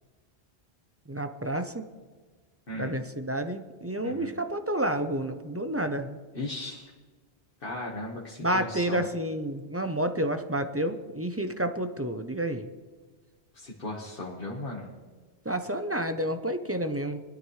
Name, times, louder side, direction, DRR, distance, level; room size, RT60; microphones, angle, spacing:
voice 1, 1.1-1.9 2.7-6.2 8.4-12.7 15.4-17.2, right 1 dB, 15° right, 8 dB, 0.6 m, -30 dB
voice 2, 2.7-3.0 4.0-4.3 6.3-6.9 7.6-9.1 13.5-14.9, left 2 dB, 55° left, -3 dB, 1.7 m, -37 dB
21.0 x 12.5 x 3.2 m, 1.4 s
omnidirectional pair, 1.1 m